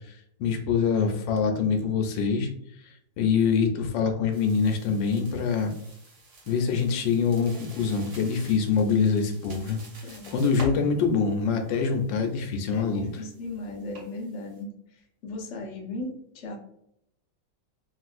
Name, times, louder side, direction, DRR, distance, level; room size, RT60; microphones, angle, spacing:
voice 1, 0.1-2.5 2.8-5.7 6.5-9.8 10.0-13.1, left 5 dB, 85° left, 4 dB, 1.3 m, -25 dB
sound 1, 4.3-14.6, equal, 65° right, 1.8 m, -47 dB
voice 2, 12.7-16.6, left 2 dB, 55° left, 0 dB, 0.8 m, -37 dB
3.5 x 2.5 x 2.4 m, 0.72 s
omnidirectional pair, 2.0 m